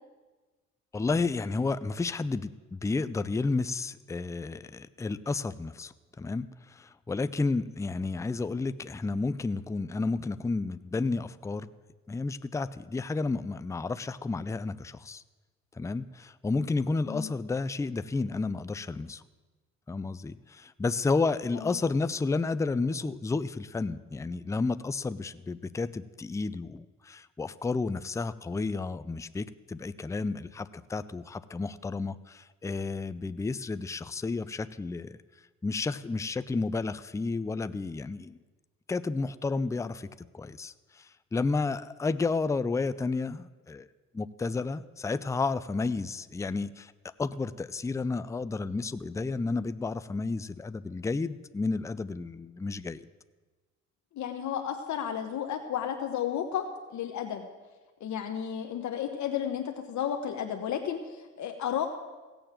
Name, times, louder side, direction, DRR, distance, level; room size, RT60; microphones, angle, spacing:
voice 1, 0.9-11.7 12.1-15.2 15.7-19.2 19.9-35.2 35.6-38.4 38.9-43.9 44.1-53.0, left 3 dB, 10° left, 14 dB, 0.4 m, -31 dB
voice 2, 54.1-57.5 58.0-61.9, left 9 dB, 70° left, 4 dB, 1.1 m, -33 dB
16.5 x 7.1 x 7.5 m, 1.3 s
cardioid pair, 90°, 30 cm